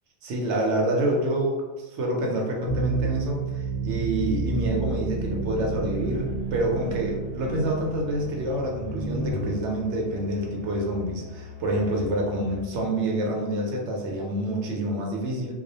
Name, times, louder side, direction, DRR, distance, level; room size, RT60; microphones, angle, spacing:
voice 1, 0.2-15.5, right 1 dB, 85° right, -1 dB, 0.9 m, -27 dB
sound 1, 2.7-9.3, right 4 dB, 65° left, 0.8 m, -30 dB
Musical instrument, 5.9-12.8, left 7 dB, 30° left, 0.8 m, -42 dB
2.3 x 2.0 x 2.7 m, 1.2 s
omnidirectional pair, 1.2 m